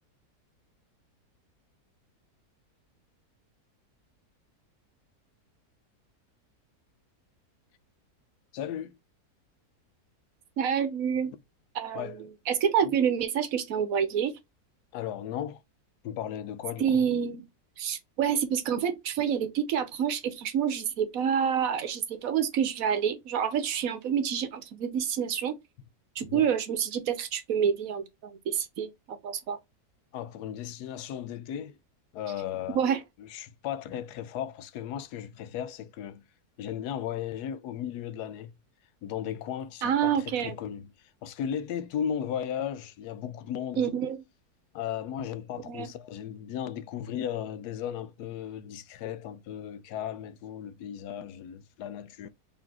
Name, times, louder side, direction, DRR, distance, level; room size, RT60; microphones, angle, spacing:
voice 1, 8.5-9.0 11.9-12.2 12.8-12.9 14.9-15.6 16.0-17.0 26.2-26.5 30.1-31.8 32.1-32.8 33.2-36.2 36.6-38.5 39.0-40.9 41.2-43.9 44.7-52.3, left 9 dB, 85° left, 1.1 m, -36 dB
voice 2, 10.6-11.3 11.7-14.3 16.8-17.4 17.8-25.6 26.2-29.6 32.7-33.0 39.8-40.6 43.8-44.2 45.7-45.9, right 8 dB, 65° right, 1.1 m, -28 dB
4.1 x 3.2 x 2.8 m
omnidirectional pair, 1.7 m